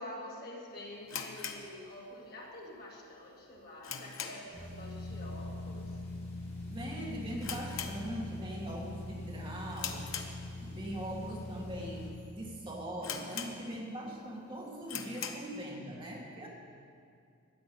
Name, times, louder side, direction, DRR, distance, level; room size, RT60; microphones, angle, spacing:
voice 1, 0.0-6.0, left 1 dB, 45° left, -3 dB, 2.1 m, -47 dB
sound 1, 1.0-2.4 2.7-2.8 3.3-4.7 4.9-5.2 5.5-5.6 6.3-6.6 6.9-7.0 7.4-8.5 8.9-9.2 9.7-10.8 11.4-11.5 12.1-12.2 12.5-12.6 13.0-14.0 14.3-14.4 14.8-15.5, left 7 dB, 65° left, 1.0 m, -41 dB
sound 2, 4.5-12.1, left 2 dB, 30° left, 2.5 m, -42 dB
voice 2, 6.7-10.1 10.6-16.5, right 1 dB, 25° right, -3 dB, 1.6 m, -41 dB
13.0 x 9.4 x 6.9 m, 2.3 s
head